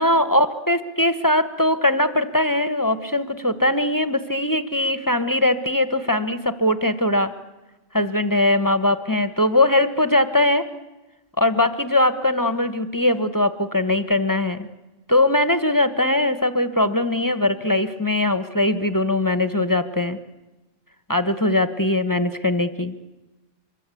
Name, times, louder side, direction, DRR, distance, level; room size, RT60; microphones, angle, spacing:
voice 1, 0.0-7.3 7.9-10.7 11.4-14.7 15.1-20.2 21.1-23.0, left 1 dB, 20° left, 10 dB, 1.1 m, -21 dB
26.0 x 23.0 x 8.4 m, 1.1 s
omnidirectional pair, 1.2 m